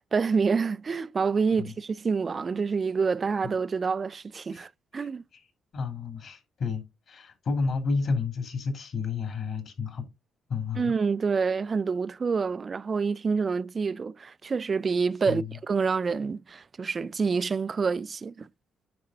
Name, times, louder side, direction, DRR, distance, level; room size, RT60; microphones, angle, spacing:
voice 1, 0.0-5.2 10.8-18.5, right 5 dB, 40° right, 0.5 m, -27 dB
voice 2, 4.9-5.4 5.7-10.1 10.5-10.9 15.3-15.6, left 4 dB, 60° left, 2.9 m, -31 dB
9.6 x 5.6 x 3.8 m
cardioid pair, 90°, 0 cm